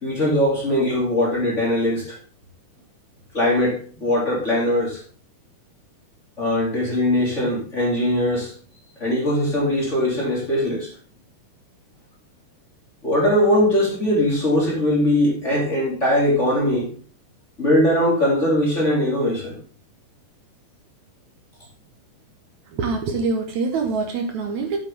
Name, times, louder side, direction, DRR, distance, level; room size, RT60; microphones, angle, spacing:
voice 1, 0.0-2.2 3.3-5.0 6.4-8.5 9.0-10.9 13.0-16.9 17.6-19.6, left 1 dB, 25° left, -4 dB, 2.8 m, -20 dB
voice 2, 22.7-24.8, right 4 dB, 70° right, 4 dB, 2.3 m, -25 dB
8.3 x 7.5 x 3.5 m, 0.42 s
omnidirectional pair, 3.7 m